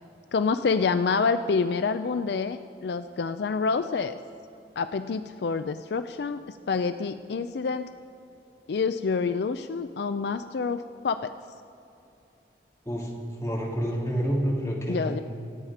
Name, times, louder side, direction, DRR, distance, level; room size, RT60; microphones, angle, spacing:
voice 1, 0.3-4.2 4.8-7.9 8.7-11.3 14.9-15.2, left 5 dB, 65° left, 11 dB, 0.4 m, -27 dB
voice 2, 13.4-15.2, equal, 15° left, -4 dB, 2.8 m, -28 dB
26.0 x 8.7 x 5.0 m, 2.8 s
head